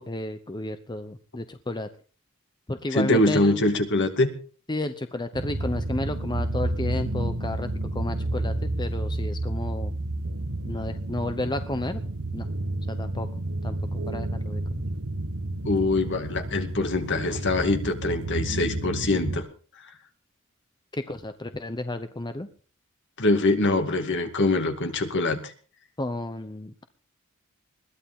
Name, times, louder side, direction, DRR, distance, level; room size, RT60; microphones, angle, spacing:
voice 1, 0.0-1.9 2.7-3.7 4.7-9.9 10.6-12.0 12.3-12.5 12.9-13.3 13.6-14.6 20.9-22.5 26.0-26.8, left 2 dB, 20° left, 8 dB, 0.9 m, -32 dB
voice 2, 2.9-4.3 15.6-19.4 23.2-25.5, left 2 dB, 55° left, 6 dB, 2.2 m, -23 dB
sound 1, 5.3-19.4, right 1 dB, 80° right, 1.3 m, -30 dB
21.5 x 14.5 x 3.7 m, 0.40 s
head